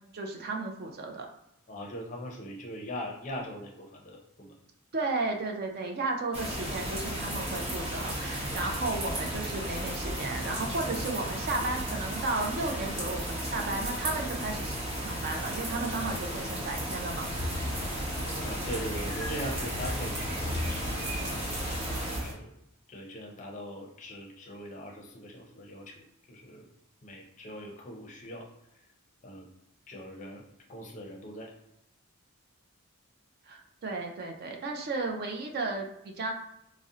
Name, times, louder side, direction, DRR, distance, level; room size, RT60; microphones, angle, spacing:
voice 1, 0.1-1.3 4.9-17.3 33.5-36.3, right 3 dB, 45° right, 3 dB, 0.4 m, -34 dB
voice 2, 1.7-4.6 8.4-8.7 18.4-22.5 22.9-26.7 27.0-28.5 28.7-28.8 29.2-29.5 29.9-31.6, equal, 35° left, 1 dB, 0.5 m, -41 dB
sound 1, 6.3-22.2, right 1 dB, 25° right, 0.7 m, -34 dB
sound 2, 17.2-22.3, left 1 dB, 70° right, 1.2 m, -37 dB
2.5 x 2.0 x 3.6 m, 0.79 s
head